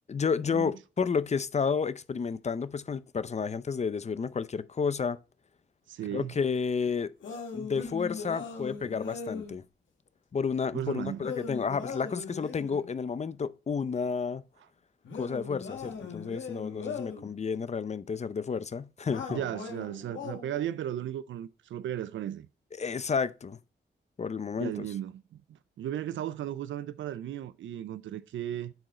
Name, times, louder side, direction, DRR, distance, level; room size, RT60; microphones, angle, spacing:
voice 1, 0.1-5.2 6.1-7.1 7.5-9.6 10.3-14.4 15.1-19.4 22.8-23.6 24.2-24.9, left 5 dB, 35° left, 0.5 m, -31 dB
voice 2, 5.9-6.3 10.7-11.2 19.3-22.5 24.6-25.2 25.5-28.7, right 11 dB, 90° right, 0.4 m, -35 dB
sound 1, 7.2-9.6 11.2-12.8 15.0-17.3 19.1-20.6, left 5 dB, 85° left, 1.6 m, -39 dB
7.7 x 4.6 x 4.2 m
cardioid pair, 85°, 19 cm